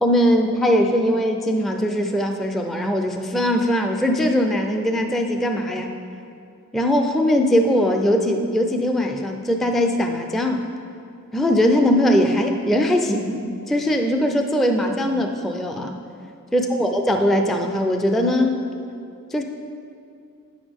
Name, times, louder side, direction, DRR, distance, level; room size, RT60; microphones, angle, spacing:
voice 1, 0.0-5.9 6.7-10.6 11.3-13.4 13.7-16.0 16.5-18.6 19.3-19.4, equal, ahead, 4 dB, 0.5 m, -20 dB
9.4 x 7.1 x 3.6 m, 2.5 s
wide cardioid pair, 70°, 34 cm